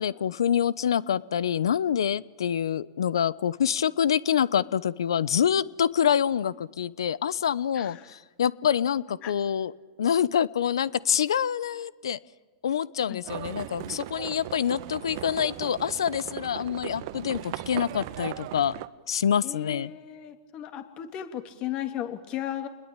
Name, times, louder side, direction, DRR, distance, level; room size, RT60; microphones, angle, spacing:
voice 1, 0.0-9.7 10.0-12.2 12.6-18.7 19.1-19.9, left 8 dB, 80° left, 20 dB, 0.9 m, -26 dB
voice 2, 7.7-8.2 9.2-9.3 13.1-13.2 19.4-22.7, left 11 dB, 40° left, 7 dB, 3.1 m, -35 dB
Livestock farm animals working animals, 13.2-18.9, right 15 dB, 55° right, 1.3 m, -38 dB
29.5 x 21.0 x 9.0 m, 1.3 s
hypercardioid pair, 105°, 2 cm